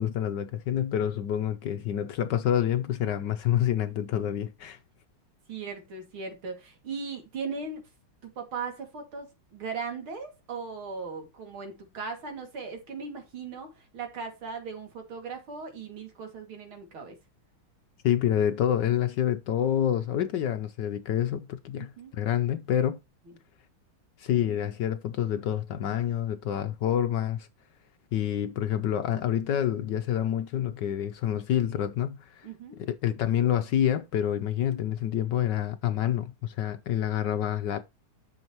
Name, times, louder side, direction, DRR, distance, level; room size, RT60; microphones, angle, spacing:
voice 1, 0.0-4.8 18.0-23.0 24.2-27.5 28.1-32.5 32.8-37.8, left 10 dB, 70° left, 1.1 m, -27 dB
voice 2, 5.5-7.8 8.2-17.2 21.7-22.1 32.4-32.8, right 5 dB, 75° right, 3.1 m, -38 dB
11.0 x 6.4 x 3.0 m
omnidirectional pair, 2.3 m